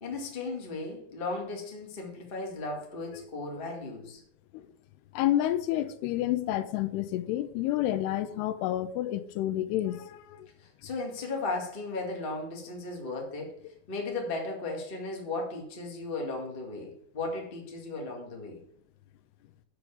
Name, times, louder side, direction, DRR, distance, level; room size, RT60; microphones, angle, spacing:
voice 1, 0.0-4.2 10.6-13.5 13.9-18.6, left 3 dB, 35° left, 0.8 m, -36 dB
voice 2, 5.1-10.5, left 13 dB, 90° left, 2.8 m, -29 dB
6.9 x 5.9 x 7.1 m
omnidirectional pair, 4.6 m